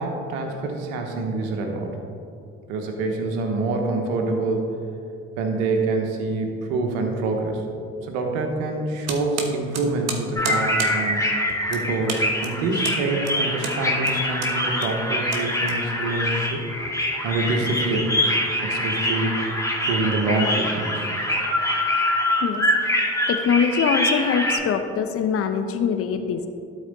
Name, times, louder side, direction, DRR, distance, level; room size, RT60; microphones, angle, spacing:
voice 1, 0.0-1.9 2.7-4.8 5.4-7.6 8.0-11.4 11.7-16.6 17.2-18.1 18.6-21.1, right 3 dB, 75° right, 3 dB, 1.1 m, -26 dB
sound 1, 9.1-16.3, right 4 dB, 55° right, 1.3 m, -34 dB
sound 2, 10.4-24.6, left 1 dB, 10° left, 1.8 m, -24 dB
voice 2, 23.3-26.5, left 6 dB, 45° left, 8 dB, 0.7 m, -23 dB
12.0 x 4.2 x 4.0 m, 2.5 s
hypercardioid pair, 50°, 31 cm